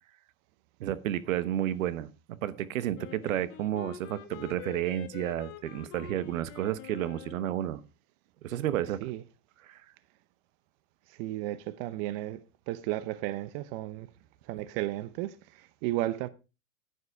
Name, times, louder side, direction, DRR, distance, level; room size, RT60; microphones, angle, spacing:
voice 1, 0.8-2.1 2.4-7.8 8.4-9.0 9.6-9.8, right 12 dB, 75° right, 1.2 m, -31 dB
Wind instrument woodwind instrument, 2.9-7.7, left 11 dB, 45° left, 1.7 m, -46 dB
voice 2, 11.1-12.4 12.7-14.1 14.4-16.3, right 15 dB, 45° right, 0.8 m, -34 dB
10.0 x 9.7 x 4.7 m
supercardioid pair, 135°, 41 cm